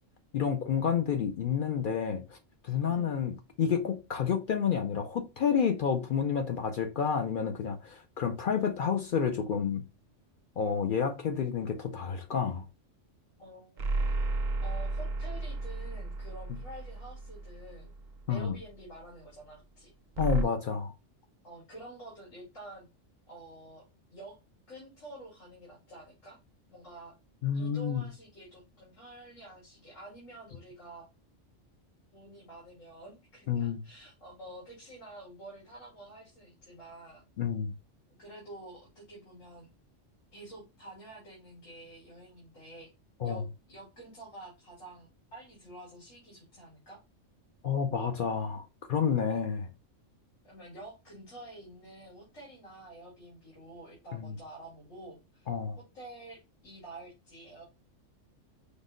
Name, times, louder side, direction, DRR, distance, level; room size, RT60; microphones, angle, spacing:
voice 1, 0.3-2.4 2.6-9.8 10.6-12.6 18.3-18.6 20.2-20.9 27.4-28.0 33.5-33.8 37.4-37.7 43.2-43.4 47.6-49.6 54.1-54.3 55.5-55.8, left 7 dB, 60° left, 0.5 m, -30 dB
voice 2, 13.4-14.1 14.6-17.9 18.3-19.9 21.4-22.9 23.3-24.4 24.7-26.4 26.7-27.2 27.5-31.1 32.1-37.2 38.2-39.7 40.3-42.9 43.2-47.0 49.3-49.5 50.4-55.5 55.9-57.7, right 2 dB, 90° left, 2.2 m, -49 dB
sound 1, 13.8-18.4 20.2-20.4, right 2 dB, 55° right, 0.6 m, -33 dB
5.2 x 2.1 x 3.7 m
omnidirectional pair, 1.3 m